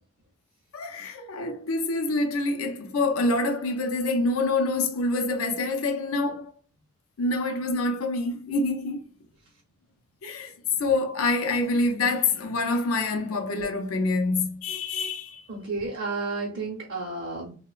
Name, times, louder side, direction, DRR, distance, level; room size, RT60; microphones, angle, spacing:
voice 1, 0.7-6.5 7.2-9.0 10.2-10.5 10.8-15.4, left 2 dB, 80° left, 0.5 m, -26 dB
voice 2, 15.5-17.5, right 3 dB, 50° right, 0.6 m, -32 dB
2.8 x 2.1 x 2.3 m
head